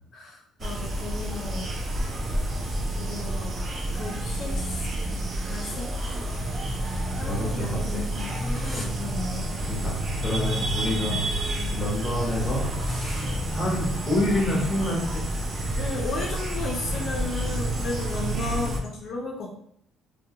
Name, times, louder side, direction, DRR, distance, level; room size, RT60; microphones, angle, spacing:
voice 1, 0.1-1.7 2.3-3.6 3.9-5.2 5.5-6.3 6.6-6.8 7.2-9.5 10.3-11.2 11.6-11.8 15.8-19.5, left 3 dB, 45° left, -2 dB, 0.4 m, -35 dB
sound 1, 0.6-18.8, right 1 dB, 30° right, 0.3 m, -29 dB
voice 2, 7.1-8.0 8.5-8.8 9.7-11.4 11.7-15.2, left 1 dB, ahead, -5 dB, 0.8 m, -29 dB
2.3 x 2.1 x 2.8 m, 0.68 s
cardioid pair, 165°, 0 cm